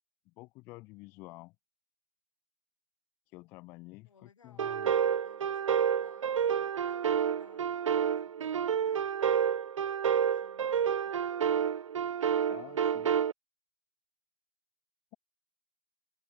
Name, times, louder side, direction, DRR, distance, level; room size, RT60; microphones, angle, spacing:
voice 1, 0.3-1.5 3.3-5.0 12.5-13.1, left 22 dB, 10° left, 0.7 m, -50 dB
voice 2, 4.1-9.3 10.2-11.4, left 6 dB, 65° left, 7.9 m, -63 dB
sound 1, 4.6-13.3, right 8 dB, 60° right, 0.4 m, -29 dB
hypercardioid pair, 160°, 18 cm